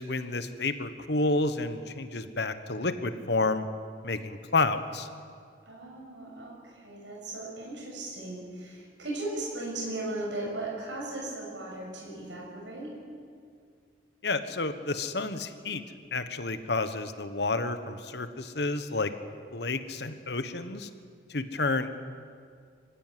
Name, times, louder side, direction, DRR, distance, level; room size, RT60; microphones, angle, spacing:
voice 1, 0.0-3.6 4.0-5.1 14.2-15.8 16.1-19.1 19.5-20.9 21.3-21.9, left 3 dB, 60° left, 10 dB, 1.3 m, -30 dB
voice 2, 5.6-12.9, right 2 dB, 75° right, -2 dB, 6.7 m, -37 dB
24.5 x 16.0 x 9.3 m, 2.2 s
head